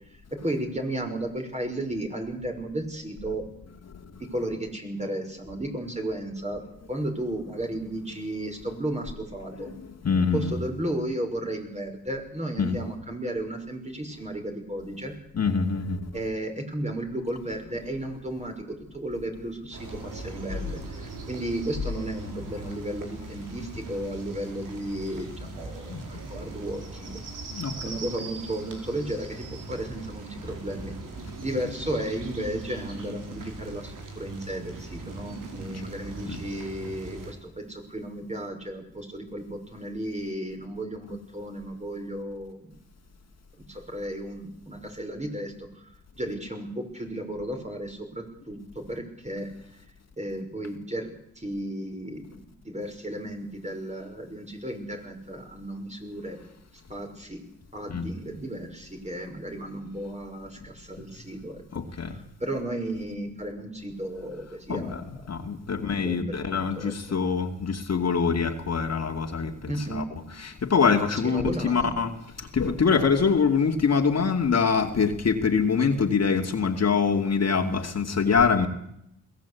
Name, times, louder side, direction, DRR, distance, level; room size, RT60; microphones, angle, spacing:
voice 1, 0.3-3.4 4.2-6.6 6.9-9.7 10.3-15.1 16.1-18.7 18.9-27.2 27.8-30.9 31.4-42.7 43.6-45.9 46.2-49.5 50.2-52.4 52.6-56.4 56.9-57.4 57.7-61.6 61.9-65.0 66.0-66.9 69.7-70.1 71.2-71.9, right 1 dB, 20° right, 3 dB, 6.0 m, -34 dB
voice 2, 10.0-10.5 12.6-12.8 15.3-16.1 25.9-26.0 27.5-27.7 36.3-36.4 57.9-58.1 61.7-62.2 64.7-65.0 65.3-70.0 70.4-78.7, left 5 dB, 55° left, 4 dB, 2.6 m, -24 dB
sound 1, 19.7-37.3, right 3 dB, 85° right, 4.4 m, -40 dB
22.0 x 17.0 x 8.5 m, 0.77 s
cardioid pair, 70°, 31 cm